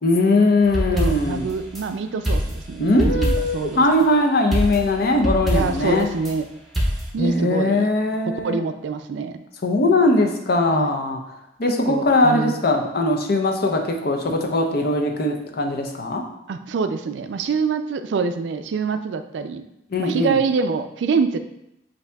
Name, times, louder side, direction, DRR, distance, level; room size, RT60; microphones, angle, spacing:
voice 1, 0.0-1.5 2.8-6.1 7.2-8.6 9.6-11.2 11.6-16.2 19.9-20.4, left 2 dB, 55° left, 3 dB, 0.6 m, -20 dB
sound 1, 0.6-1.8 2.2-3.7 4.5-6.3 6.7-7.1, equal, ahead, 0.8 m, -24 dB
voice 2, 0.9-3.8 5.5-6.5 7.1-7.9 8.4-9.4 10.7-10.9 11.9-12.6 16.5-19.7 20.0-21.4, right 5 dB, 70° right, 9 dB, 0.3 m, -25 dB
8.0 x 2.7 x 2.3 m, 0.85 s
head